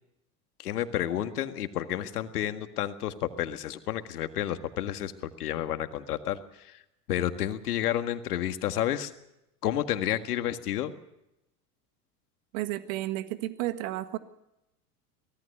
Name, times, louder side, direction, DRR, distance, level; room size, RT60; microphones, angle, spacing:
voice 1, 0.6-5.1 5.4-6.8 7.1-9.1 9.6-10.9, left 11 dB, 80° left, 9 dB, 1.9 m, -30 dB
voice 2, 12.5-14.2, right 16 dB, 60° right, 10 dB, 1.8 m, -32 dB
24.0 x 18.0 x 6.7 m, 0.88 s
hypercardioid pair, 85°, 45 cm